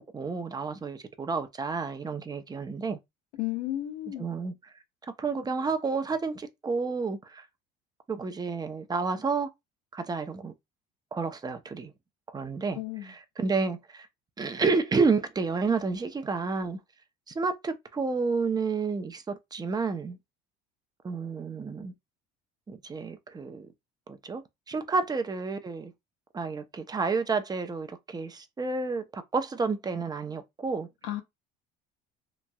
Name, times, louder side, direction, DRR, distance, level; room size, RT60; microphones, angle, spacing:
voice 1, 0.1-3.0 4.2-4.7 5.2-7.5 8.1-9.5 9.9-10.5 11.1-11.9 12.3-14.1 14.4-16.8 17.3-20.2 21.0-21.9 22.7-23.7 24.1-25.9 26.3-30.9, right 4 dB, 20° right, 0.6 m, -30 dB
voice 2, 3.4-4.3 12.7-13.1 31.0-31.2, left 14 dB, 80° left, 0.9 m, -33 dB
3.0 x 2.5 x 2.3 m
supercardioid pair, 90°, 20 cm